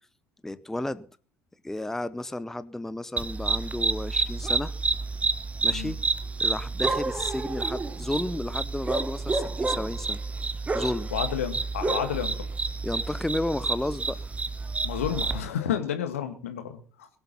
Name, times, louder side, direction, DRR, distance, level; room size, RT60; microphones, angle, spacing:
voice 1, 0.4-1.1 1.6-4.7 5.6-6.0 6.4-10.2 10.7-11.1 12.8-14.2, left 1 dB, 5° left, 0.6 m, -32 dB
sound 1, 3.2-15.4, right 3 dB, 20° right, 1.2 m, -29 dB
voice 2, 11.1-12.3 14.8-17.1, left 9 dB, 70° left, 1.9 m, -31 dB
21.5 x 8.1 x 5.6 m
figure-of-eight pair, 60°, 8 cm